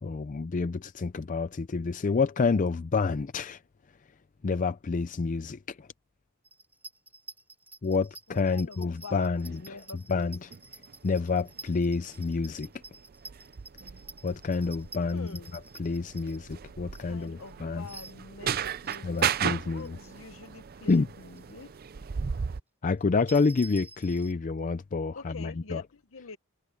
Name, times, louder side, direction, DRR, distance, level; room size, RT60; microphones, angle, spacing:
voice 1, 0.0-3.6 4.4-5.9 7.8-9.8 10.1-10.5 11.0-12.7 14.2-15.3 15.8-17.8 19.0-20.0 20.9-21.1 22.8-25.8, left 4 dB, 35° left, 0.4 m, -28 dB
sound 1, 6.4-17.5 17.9-19.4 19.8-20.6 20.8-21.0 21.3-21.6 21.9-22.0 23.0-24.3, right 3 dB, 10° right, 3.7 m, -49 dB
voice 2, 8.3-10.5 15.1-15.6 16.8-21.7 25.1-26.4, left 4 dB, 65° left, 0.9 m, -46 dB
sound 2, 9.4-9.6 10.5-22.6, right 8 dB, 45° right, 0.4 m, -36 dB
head